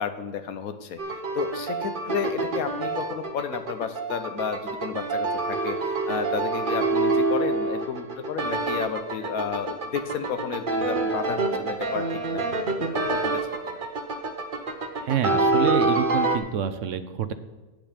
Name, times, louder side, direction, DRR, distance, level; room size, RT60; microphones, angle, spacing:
voice 1, 0.0-13.6, left 6 dB, 85° left, 9 dB, 1.3 m, -32 dB
sound 1, 1.0-16.4, right 3 dB, 40° right, 1.1 m, -27 dB
voice 2, 15.0-17.3, right 8 dB, 65° right, 11 dB, 1.0 m, -27 dB
9.0 x 8.5 x 5.1 m, 1.2 s
omnidirectional pair, 1.5 m